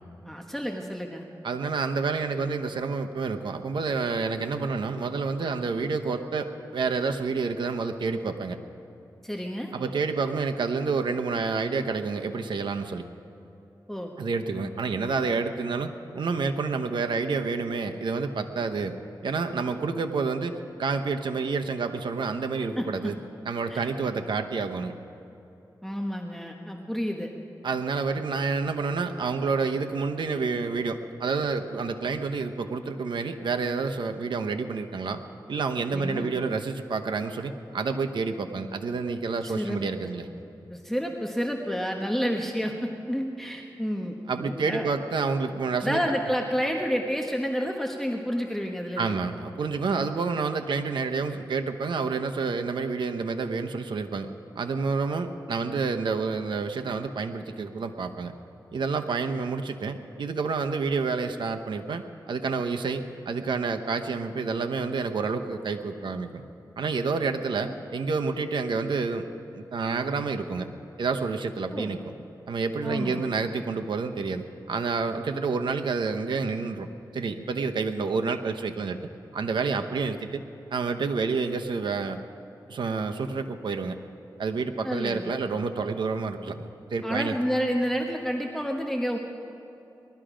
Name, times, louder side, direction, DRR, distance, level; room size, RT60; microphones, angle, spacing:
voice 1, 0.2-1.2 9.2-9.7 13.9-14.1 22.8-23.1 23.7-23.9 25.8-27.3 35.9-36.3 39.4-39.8 40.7-44.9 45.8-49.1 67.6-67.7 71.7-72.0 72.8-73.3 84.8-85.4 87.0-89.2, equal, 5° left, 2 dB, 1.2 m, -30 dB
voice 2, 1.4-8.6 9.7-13.0 14.2-19.0 19.2-23.2 23.4-25.0 27.6-35.2 35.5-40.3 44.3-46.0 49.0-54.3 54.6-58.3 58.7-66.4 66.8-69.3 69.5-70.7 71.0-72.1 72.5-79.0 79.3-80.4 80.7-82.2 82.7-84.0 84.4-87.4, right 4 dB, 80° right, 6 dB, 0.9 m, -29 dB
19.5 x 13.0 x 5.1 m, 2.8 s
cardioid pair, 55°, 8 cm